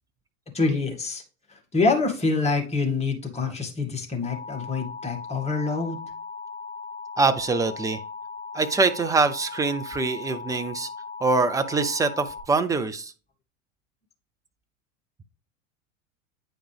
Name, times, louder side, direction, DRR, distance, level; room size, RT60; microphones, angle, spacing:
voice 1, 0.5-1.2 1.5-6.0, left 3 dB, 15° left, 2 dB, 2.0 m, -26 dB
Alarm, 4.2-12.4, left 5 dB, 50° left, 2.9 m, -38 dB
voice 2, 7.2-8.0 8.5-10.9 11.2-13.1, right 3 dB, 10° right, 8 dB, 0.5 m, -24 dB
9.0 x 5.1 x 3.3 m, 0.35 s
figure-of-eight pair, 85°, 40 cm